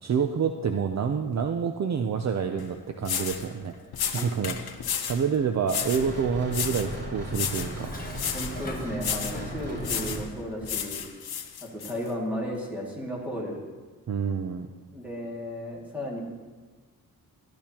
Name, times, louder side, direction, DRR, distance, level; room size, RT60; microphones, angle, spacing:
voice 1, 0.0-3.7 4.1-4.6 5.0-8.0 14.1-14.7, right 6 dB, 50° right, 5 dB, 0.5 m, -27 dB
sound 1, 2.6-2.7 3.0-3.5 3.9-5.2 5.7-6.1 6.5-6.9 7.3-7.8 8.1-8.6 9.0-9.4 9.8-10.3 10.6-11.9, left 8 dB, 80° left, 0.8 m, -32 dB
sound 2, 5.8-10.2, equal, 30° right, 2.5 m, -36 dB
Dishes pots and pans, 7.4-9.9, left 2 dB, 25° left, 1.1 m, -43 dB
voice 2, 8.3-11.1 11.6-13.6 14.9-16.2, equal, 5° right, -4 dB, 2.1 m, -34 dB
12.0 x 12.0 x 2.9 m, 1.4 s
wide cardioid pair, 150°, 36 cm